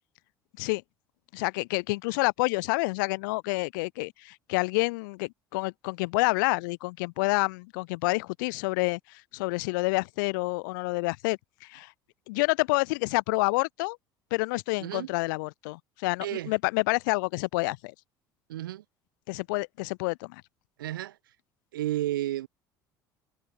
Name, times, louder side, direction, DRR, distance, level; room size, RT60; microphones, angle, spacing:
voice 1, 1.3-11.9 12.3-14.0 14.3-17.9 19.3-20.4, left 26 dB, 65° left, 0.9 m, -28 dB
voice 2, 14.8-15.1 16.2-16.5 18.5-18.8 20.8-21.2 21.7-22.5, right 14 dB, 70° right, 6.1 m, -32 dB
figure-of-eight pair, 60°, 12 cm